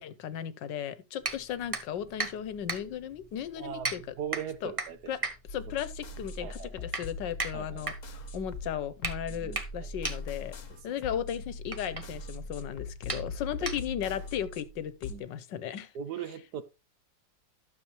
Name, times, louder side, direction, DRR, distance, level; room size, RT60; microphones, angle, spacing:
voice 1, 0.0-4.0 4.6-4.7 5.1-5.2 5.5-10.5 10.8-15.9, left 9 dB, 80° left, 1.5 m, -36 dB
sound 1, 1.2-14.2, right 3 dB, 25° right, 0.9 m, -39 dB
voice 2, 3.6-5.2 5.7-5.8 6.4-6.9 7.5-7.9 9.3-9.9 10.7-11.0 13.1-13.2 15.1-15.2 15.9-16.6, right 8 dB, 70° right, 1.3 m, -40 dB
sound 2, 5.5-15.2, left 2 dB, 50° left, 1.3 m, -41 dB
12.0 x 6.9 x 3.1 m
omnidirectional pair, 1.9 m